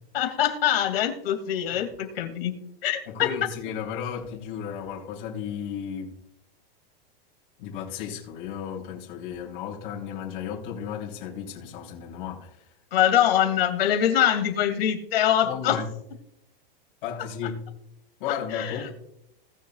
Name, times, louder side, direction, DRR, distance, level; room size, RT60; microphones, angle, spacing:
voice 1, 0.1-2.5 2.8-3.0 12.9-15.8 18.5-18.9, left 10 dB, 80° left, 2.5 m, -23 dB
voice 2, 3.1-6.2 7.6-12.7 15.4-15.9 17.0-17.6 18.2-18.9, left 8 dB, 50° left, 3.8 m, -34 dB
19.5 x 7.0 x 2.4 m
supercardioid pair, 160°, 29 cm